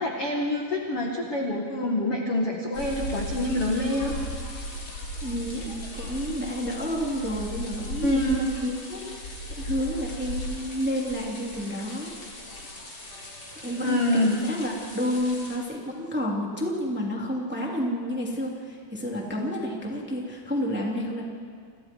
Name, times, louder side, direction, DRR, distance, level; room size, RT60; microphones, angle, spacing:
voice 1, 0.0-4.1 8.0-8.4 13.8-14.3, left 1 dB, 45° left, 0 dB, 2.0 m, -26 dB
sound 1, 2.7-15.6, equal, 30° left, 4.1 m, -37 dB
voice 2, 5.2-12.1 13.6-21.2, equal, 5° right, -2 dB, 2.4 m, -30 dB
29.0 x 28.0 x 4.7 m, 2.1 s
omnidirectional pair, 5.0 m